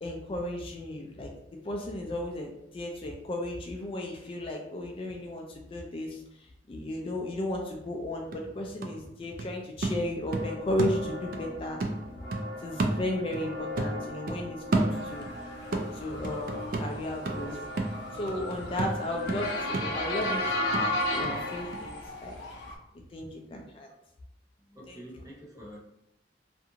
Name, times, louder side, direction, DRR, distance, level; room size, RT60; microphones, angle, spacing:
voice 1, 0.0-1.3 1.6-6.2 6.7-11.8 12.6-15.3 15.9-17.6 18.1-20.4 20.7-22.4 23.1-23.9 24.9-25.0, left 1 dB, 30° left, 1 dB, 0.3 m, -34 dB
sound 1, 7.9-8.0 8.3-11.5 11.8-13.5 13.8-15.4 15.7-21.4 21.7-21.8, right 2 dB, 55° right, 0.3 m, -32 dB
sound 2, 10.3-21.6, left 2 dB, 80° right, 1.2 m, -41 dB
Motor vehicle (road) / Siren, 15.5-22.7, left 1 dB, 80° left, 0.5 m, -33 dB
voice 2, 24.7-25.8, equal, 20° right, -4 dB, 0.6 m, -46 dB
2.5 x 2.4 x 2.8 m, 0.79 s
head